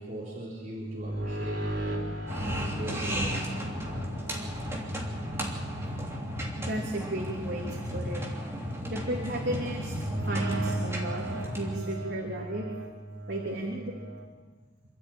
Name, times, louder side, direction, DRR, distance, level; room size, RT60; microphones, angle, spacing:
voice 1, 0.0-2.2 2.7-3.7, right 1 dB, 40° right, -6 dB, 3.9 m, -39 dB
sound 1, 0.7-7.8 9.8-14.2, right 1 dB, 90° right, 4.2 m, -37 dB
sound 2, 2.3-11.8, equal, 15° right, 3.1 m, -34 dB
voice 2, 6.6-8.2 8.9-9.9 10.3-12.7 13.3-14.0, right 1 dB, 70° right, -2 dB, 3.2 m, -34 dB
27.5 x 12.5 x 9.1 m, 1.4 s
head